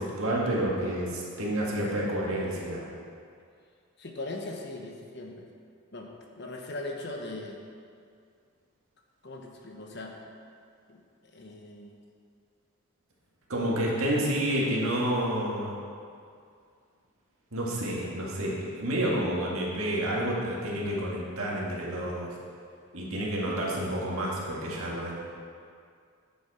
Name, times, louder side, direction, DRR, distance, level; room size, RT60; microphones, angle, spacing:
voice 1, 0.0-2.9 13.5-15.8 17.5-22.4 22.9-25.1, right 1 dB, 75° right, -4 dB, 1.9 m, -29 dB
voice 2, 4.0-5.5 5.9-6.1 6.4-7.6 9.2-10.2 10.9-11.9, left 2 dB, 50° left, 1 dB, 1.0 m, -39 dB
9.8 x 7.0 x 4.3 m, 2.3 s
head